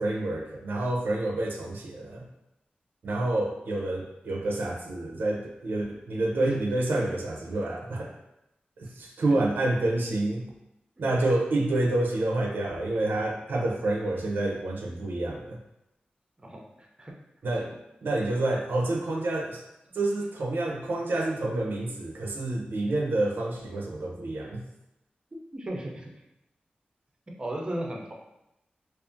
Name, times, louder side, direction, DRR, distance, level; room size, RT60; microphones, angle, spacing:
voice 1, 0.0-2.3 3.0-8.1 8.8-10.4 11.0-15.6 17.4-19.6 19.9-24.6, right 2 dB, 85° right, 0 dB, 0.4 m, -28 dB
voice 2, 16.4-17.2 25.5-26.2 27.4-28.1, right 1 dB, 25° right, -1 dB, 0.4 m, -35 dB
2.4 x 2.3 x 2.5 m, 0.87 s
wide cardioid pair, 115°, 3 cm